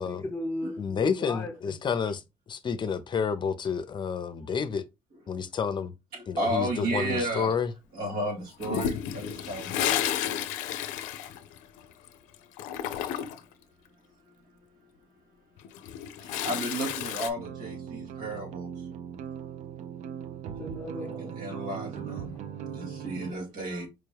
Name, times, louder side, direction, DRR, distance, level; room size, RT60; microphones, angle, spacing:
voice 1, 0.0-1.8 20.4-21.4 22.3-22.7, left 1 dB, 25° left, 1.0 m, -37 dB
voice 2, 0.8-2.2 2.5-4.8 5.3-5.9 6.3-7.7, left 6 dB, 40° left, 0.6 m, -30 dB
voice 3, 6.1-7.5 7.9-10.5 16.2-18.7 21.2-22.3 22.7-23.9, right 1 dB, 90° right, 2.1 m, -33 dB
Toilet flush, 8.6-12.1 12.3-13.5 15.6-17.3, left 10 dB, 80° left, 0.5 m, -32 dB
sound 1, 17.4-23.3, right 8 dB, 70° right, 0.5 m, -39 dB
4.8 x 2.2 x 3.3 m
supercardioid pair, 80°, 13 cm